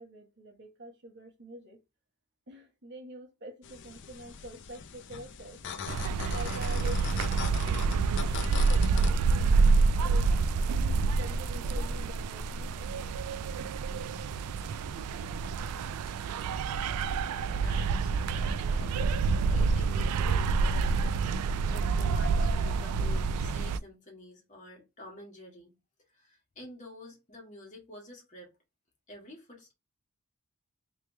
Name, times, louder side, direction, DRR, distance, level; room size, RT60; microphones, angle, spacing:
voice 1, 0.0-1.8 2.5-5.6 6.3-7.5 8.1-9.7 10.0-13.1, right 1 dB, 50° right, 1.2 m, -46 dB
sound 1, 3.6-9.1, left 6 dB, 55° left, 0.4 m, -41 dB
sound 2, 5.9-23.8, right 4 dB, 90° right, 0.3 m, -28 dB
sound 3, 10.6-16.1, equal, ahead, 1.0 m, -44 dB
voice 2, 17.5-21.1 21.3-25.7 26.1-28.5 29.1-29.7, left 1 dB, 35° left, 1.6 m, -49 dB
3.3 x 3.2 x 3.0 m
head